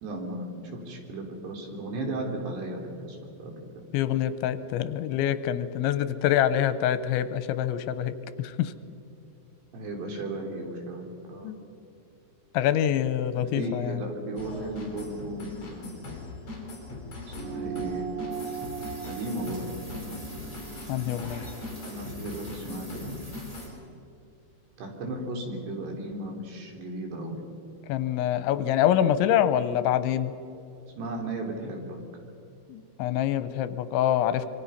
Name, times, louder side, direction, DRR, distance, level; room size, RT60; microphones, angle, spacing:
voice 1, 0.0-3.5 9.7-11.5 13.4-16.2 17.3-18.1 19.1-19.7 21.8-23.1 24.8-27.4 31.0-32.0, right 1 dB, 65° right, 1 dB, 5.3 m, -35 dB
voice 2, 3.9-8.7 11.4-11.5 12.5-14.0 20.9-21.4 27.9-30.3 32.7-34.5, left 11 dB, 85° left, 12 dB, 3.1 m, -25 dB
sound 1, 14.4-23.8, left 2 dB, 35° left, 5.8 m, -40 dB
sound 2, 17.3-22.1, right 8 dB, 90° right, 3.8 m, -39 dB
sound 3, 18.3-23.7, equal, 10° right, 2.8 m, -48 dB
26.5 x 24.5 x 5.7 m, 2.7 s
omnidirectional pair, 5.4 m